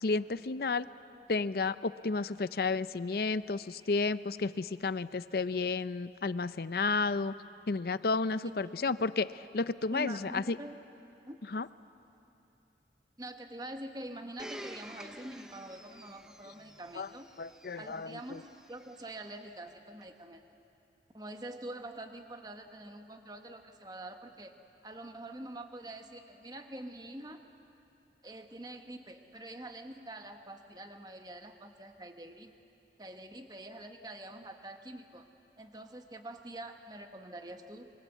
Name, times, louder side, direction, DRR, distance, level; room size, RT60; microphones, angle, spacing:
voice 1, 0.0-0.9 1.3-7.3 7.7-10.6 11.5-11.7 17.0-17.1 17.4-18.4, left 3 dB, 60° left, 15 dB, 0.5 m, -32 dB
voice 2, 8.4-8.8 9.9-10.7 11.3-11.4 13.2-17.3 17.8-20.4 21.1-24.6 24.8-27.4 28.2-32.5 33.0-35.3 35.6-37.9, right 1 dB, 20° right, 5 dB, 1.3 m, -45 dB
Domestic sounds home sounds, 14.4-19.2 20.0-20.1, equal, 5° right, 0.8 m, -50 dB
26.5 x 24.0 x 8.3 m, 2.8 s
head